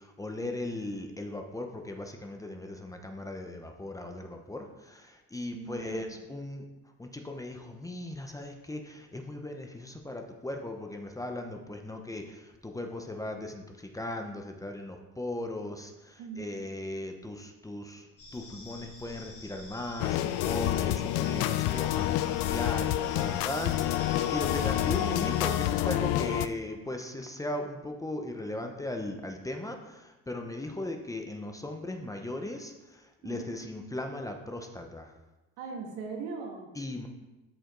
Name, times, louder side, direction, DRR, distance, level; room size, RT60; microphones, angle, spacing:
voice 1, 0.0-6.6 7.0-35.1 36.8-37.1, left 1 dB, 10° left, 3 dB, 0.8 m, -38 dB
voice 2, 5.5-6.2 16.2-16.5 33.2-33.7 35.6-36.7, right 5 dB, 85° right, 0 dB, 2.2 m, -40 dB
sound 1, 18.2-25.7, left 2 dB, 40° left, 3.4 m, -47 dB
sound 2, 20.0-26.5, left 13 dB, 70° left, 0.5 m, -28 dB
13.0 x 5.0 x 3.9 m, 1.1 s
cardioid pair, 125°, 36 cm